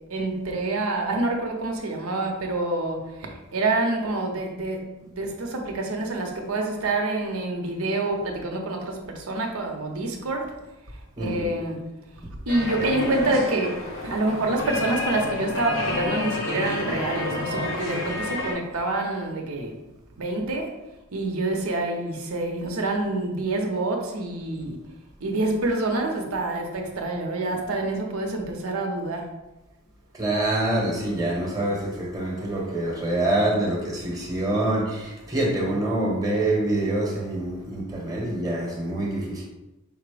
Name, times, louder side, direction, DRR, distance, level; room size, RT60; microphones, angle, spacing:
voice 1, 0.0-10.6 11.2-11.9 12.5-19.8 20.2-20.7 21.1-24.8 25.2-29.3, right 2 dB, 75° right, 0.8 m, -27 dB
voice 2, 11.2-11.5 30.1-39.4, right 1 dB, 15° right, 1.0 m, -26 dB
sound 1, 12.5-18.5, left 2 dB, 60° left, 0.8 m, -30 dB
5.1 x 2.0 x 4.8 m
head